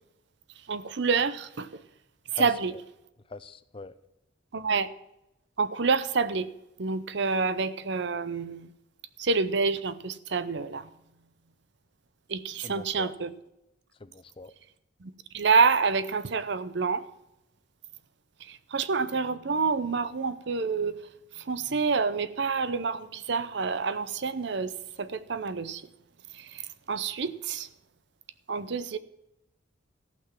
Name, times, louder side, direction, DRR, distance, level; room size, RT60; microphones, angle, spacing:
voice 1, 0.7-1.8 2.3-2.7 4.5-4.9 5.6-6.5 6.8-8.7 9.2-10.9 12.3-13.3 15.0-17.0 18.4-21.0 21.4-25.9 26.3-27.7 28.5-29.0, right 4 dB, 65° right, 0.7 m, -28 dB
voice 2, 2.3-2.8 3.3-4.0 12.6-13.1 14.0-14.5, left 3 dB, 30° left, 0.5 m, -42 dB
14.5 x 6.0 x 7.3 m
head